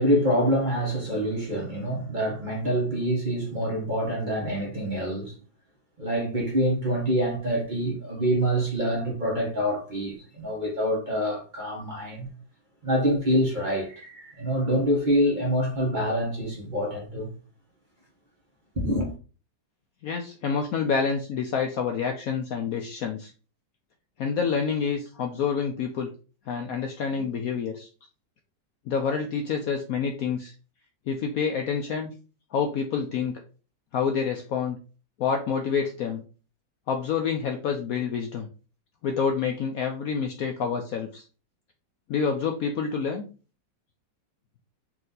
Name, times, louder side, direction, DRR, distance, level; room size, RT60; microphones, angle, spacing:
voice 1, 0.0-5.3 6.0-12.3 12.8-17.3 18.8-19.1, equal, 30° right, 1.0 m, -26 dB
voice 2, 20.0-23.3 24.2-26.1 26.5-27.9 28.9-30.5 31.1-32.1 32.5-33.4 33.9-34.8 35.2-36.2 36.9-38.5 39.0-41.2 42.1-43.3, left 6 dB, 70° left, 0.8 m, -28 dB
4.3 x 2.7 x 3.8 m
omnidirectional pair, 1.9 m